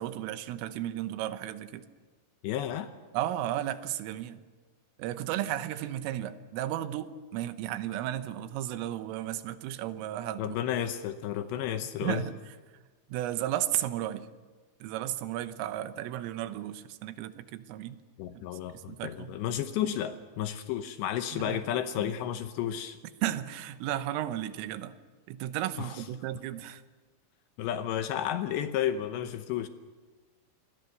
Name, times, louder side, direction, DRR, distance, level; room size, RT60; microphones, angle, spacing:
voice 1, 0.0-1.8 3.1-4.4 5.0-10.6 12.0-12.3 13.1-14.3 14.8-18.0 18.3-18.4 18.9-19.4 21.3-21.6 22.0-22.1 23.2-24.9 25.3-26.8, right 12 dB, 85° right, 11 dB, 3.6 m, -34 dB
voice 2, 2.4-2.9 10.4-12.2 18.2-23.0 25.8-26.0 27.6-29.7, left 10 dB, 75° left, 9 dB, 2.8 m, -32 dB
27.5 x 21.5 x 6.7 m, 1.3 s
omnidirectional pair, 5.8 m